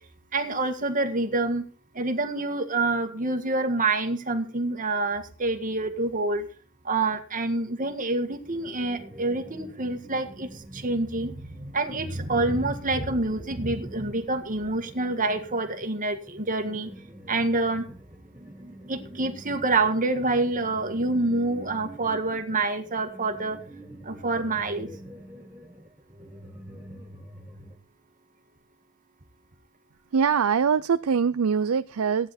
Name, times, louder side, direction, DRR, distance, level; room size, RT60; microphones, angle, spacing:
voice 1, 0.3-1.6 1.9-6.5 6.8-16.9 17.3-17.8 18.9-23.6 24.0-24.9, right 2 dB, 40° right, 6 dB, 1.8 m, -27 dB
sound 1, 8.4-27.8, right 1 dB, 10° right, 1.6 m, -46 dB
voice 2, 30.1-32.3, right 6 dB, 80° right, 13 dB, 0.5 m, -23 dB
16.0 x 10.0 x 4.3 m, 0.40 s
head